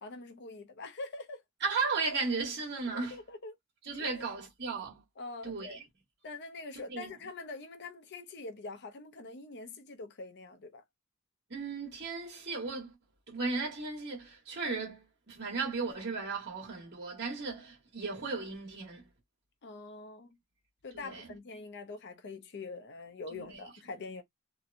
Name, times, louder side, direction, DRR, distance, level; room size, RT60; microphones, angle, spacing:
voice 1, 0.0-1.4 2.9-3.5 4.0-4.2 5.2-5.8 6.2-10.8 19.6-20.4 20.8-24.2, left 3 dB, 50° left, 0.5 m, -44 dB
voice 2, 1.6-3.2 3.9-5.0 5.4-5.8 6.9-7.1 11.5-12.9 13.3-19.0 20.9-21.3 23.3-23.6, right 4 dB, 50° right, 1.2 m, -35 dB
2.8 x 2.1 x 2.5 m
head